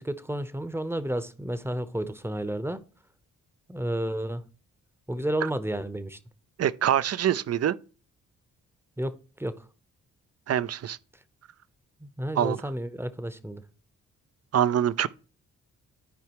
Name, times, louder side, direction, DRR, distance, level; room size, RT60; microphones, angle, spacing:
voice 1, 0.0-2.8 3.7-4.4 5.1-6.2 9.0-9.6 12.0-13.6, right 1 dB, 5° right, 0.8 m, -31 dB
voice 2, 6.6-7.8 10.5-11.0 12.4-12.6 14.5-15.1, right 10 dB, 50° right, 0.5 m, -24 dB
12.5 x 4.7 x 3.0 m
supercardioid pair, 55°, 33 cm